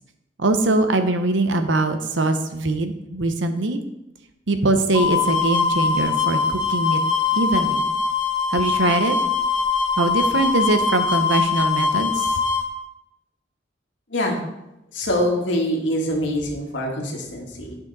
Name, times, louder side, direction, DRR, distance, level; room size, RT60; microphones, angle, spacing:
voice 1, 0.4-3.8 4.5-7.0 7.3-7.8 8.5-9.1 10.0-12.3, right 2 dB, 85° right, 8 dB, 0.8 m, -22 dB
sound 1, 4.9-12.6, left 5 dB, 25° left, 1.0 m, -22 dB
voice 2, 14.9-17.8, equal, 80° left, 0 dB, 1.8 m, -24 dB
9.4 x 5.6 x 4.1 m, 0.91 s
head